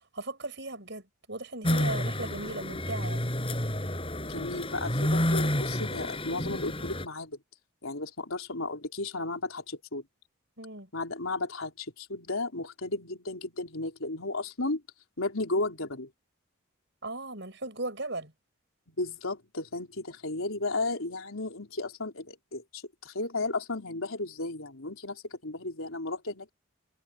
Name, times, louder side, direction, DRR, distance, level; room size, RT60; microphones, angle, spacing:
voice 1, 0.1-1.0 1.3-3.3 10.6-10.9 17.0-18.3, right 2 dB, 55° right, 7.3 m, -37 dB
sound 1, 1.6-7.1, left 1 dB, 25° left, 7.6 m, -30 dB
voice 2, 4.2-7.4 7.8-10.1 10.9-14.8 15.2-16.1 18.9-26.5, left 2 dB, 75° left, 3.6 m, -34 dB
head